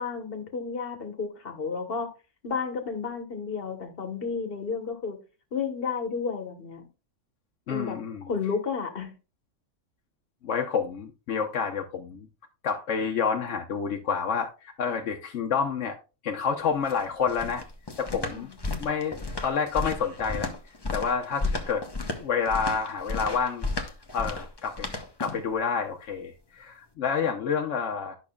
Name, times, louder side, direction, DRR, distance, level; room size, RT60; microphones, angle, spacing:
voice 1, 0.0-2.1 2.4-5.2 5.5-6.8 7.7-8.0 8.2-9.1 18.3-18.7, left 5 dB, 50° left, 1.5 m, -32 dB
voice 2, 7.7-8.2 10.4-12.3 12.6-16.0 16.2-17.6 18.0-18.5 18.8-20.5 20.9-21.8 22.1-23.7 24.1-28.2, left 6 dB, 75° left, 1.1 m, -29 dB
sound 1, 16.6-25.5, left 3 dB, 20° left, 0.9 m, -33 dB
10.5 x 6.0 x 2.3 m
omnidirectional pair, 1.3 m